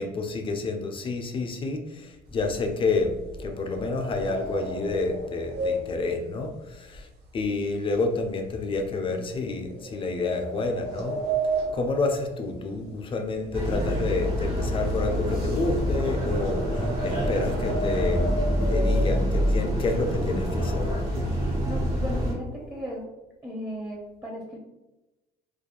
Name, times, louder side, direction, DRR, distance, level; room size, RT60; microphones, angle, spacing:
voice 1, 0.0-11.2 11.7-18.4 18.7-20.9, left 3 dB, 30° left, 5 dB, 0.4 m, -29 dB
sound 1, 2.3-7.6 7.9-8.3 8.8-8.9 9.7-13.0 13.3-19.5 20.1-20.2 20.5-20.8 21.1-21.8, right 2 dB, 90° right, 0.6 m, -33 dB
sound 2, 13.5-22.3, equal, 60° right, 1.0 m, -26 dB
voice 2, 21.6-23.1 23.4-24.6, equal, 20° right, -3 dB, 0.6 m, -36 dB
2.4 x 2.2 x 2.9 m, 1.0 s
cardioid pair, 110°, 17 cm